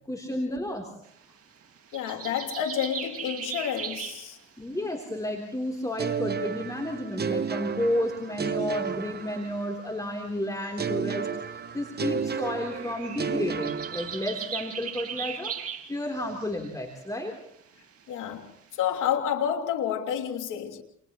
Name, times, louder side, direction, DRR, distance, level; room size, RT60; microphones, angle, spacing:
voice 1, 0.1-0.9 4.6-15.6 15.9-17.3, left 1 dB, 10° left, 3.7 m, -32 dB
sound 1, 1.0-5.0 5.7-5.8 6.1-6.9 7.3-7.4 8.4-9.2 10.4-16.9 17.3-18.0 18.4-19.1, right 7 dB, 50° right, 2.4 m, -39 dB
voice 2, 1.9-4.4 18.1-18.5 18.8-20.8, left 9 dB, 90° left, 3.0 m, -29 dB
sound 2, 6.0-9.9 10.8-14.6, right 6 dB, 35° right, 0.9 m, -32 dB
29.0 x 29.0 x 3.2 m
cardioid pair, 90°, 30 cm